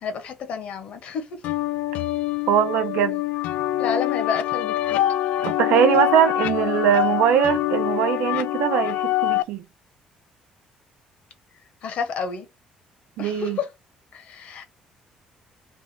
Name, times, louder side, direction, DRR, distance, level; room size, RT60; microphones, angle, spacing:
voice 1, 0.0-1.4 3.8-5.0 11.8-12.5 13.2-13.7 14.1-14.6, left 5 dB, 60° left, 1.3 m, -30 dB
sound 1, 1.4-9.4, left 14 dB, 85° left, 0.4 m, -25 dB
voice 2, 2.5-3.2 5.4-9.6 13.2-13.6, right 9 dB, 90° right, 0.8 m, -21 dB
3.5 x 2.5 x 4.3 m
cardioid pair, 140°, 3 cm